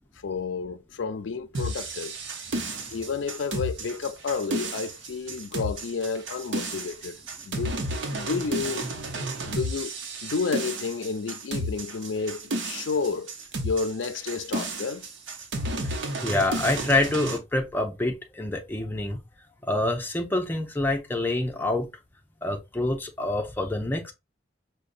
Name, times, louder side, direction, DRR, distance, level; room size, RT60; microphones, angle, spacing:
voice 1, 0.2-2.2 2.9-7.8 8.1-8.9 9.4-9.9 10.2-13.3 13.6-15.1, left 5 dB, 85° left, 0.4 m, -31 dB
sound 1, 1.5-17.4, right 1 dB, 85° right, 0.8 m, -32 dB
voice 2, 15.8-19.2 19.6-21.9 22.4-24.1, left 2 dB, 10° left, 0.6 m, -27 dB
5.1 x 2.2 x 2.5 m
head